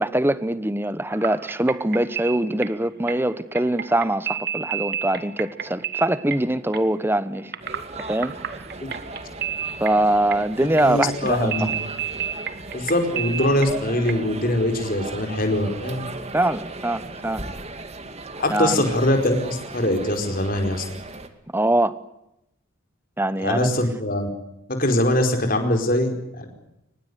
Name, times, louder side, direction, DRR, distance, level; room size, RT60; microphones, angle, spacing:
voice 1, 0.0-7.5 8.1-8.3 9.8-11.5 16.3-17.4 18.5-18.8 21.5-21.9 23.2-23.7, right 1 dB, 10° right, 15 dB, 1.0 m, -23 dB
sound 1, 1.1-14.1, right 8 dB, 50° right, 1.5 m, -32 dB
sound 2, 7.6-21.3, right 2 dB, 30° right, 2.3 m, -37 dB
voice 2, 10.8-11.7 12.7-16.0 18.4-20.8 23.4-24.3 24.7-26.5, left 1 dB, 45° left, 4 dB, 4.9 m, -22 dB
24.5 x 21.0 x 8.1 m, 0.85 s
head